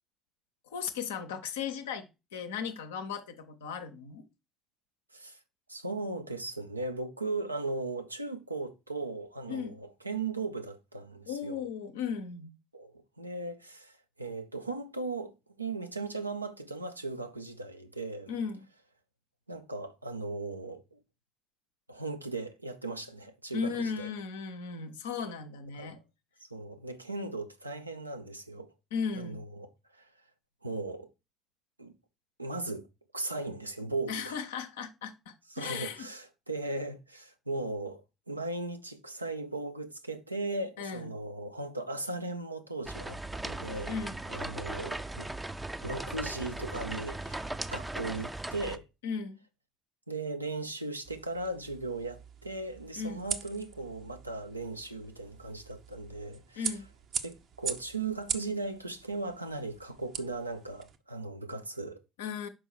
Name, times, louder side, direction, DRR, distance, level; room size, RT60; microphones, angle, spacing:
voice 1, 0.7-2.1 2.3-4.2 9.5-9.8 11.3-12.5 18.3-18.6 23.5-26.0 28.9-29.4 34.1-36.1 40.8-41.1 43.9-44.2 49.0-49.4 53.0-53.2 56.6-56.9 62.2-62.5, left 6 dB, 70° left, 0.8 m, -36 dB
voice 2, 5.7-11.6 12.7-15.3 15.6-18.3 19.5-21.0 21.9-24.1 25.8-26.0 26.4-28.7 29.1-30.1 30.6-31.1 31.8-31.9 32.4-32.8 33.1-34.4 35.5-44.0 44.3-45.3 45.8-47.4 47.7-48.9 50.1-56.8 57.2-62.0, right 3 dB, 85° right, 0.6 m, -37 dB
sound 1, 42.8-48.8, right 2 dB, 10° right, 0.5 m, -38 dB
sound 2, 51.0-61.0, right 8 dB, 50° right, 0.7 m, -42 dB
6.1 x 5.3 x 4.6 m
figure-of-eight pair, 50°, 0 cm